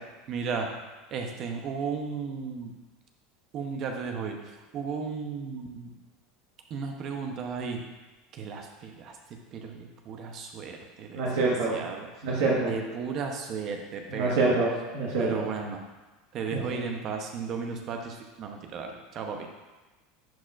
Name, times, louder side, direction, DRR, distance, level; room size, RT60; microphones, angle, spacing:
voice 1, 0.3-0.7 1.1-2.7 3.5-4.4 4.7-5.9 6.7-7.8 8.4-9.1 9.5-11.2 11.7-12.1 12.7-14.5 15.2-15.8 16.3-19.4, right 5 dB, 45° right, 3 dB, 0.8 m, -34 dB
voice 2, 11.1-11.7 12.2-12.7 14.1-15.4, right 3 dB, 75° right, -4 dB, 1.5 m, -25 dB
10.5 x 4.4 x 2.5 m, 1.2 s
supercardioid pair, 115°, 0 cm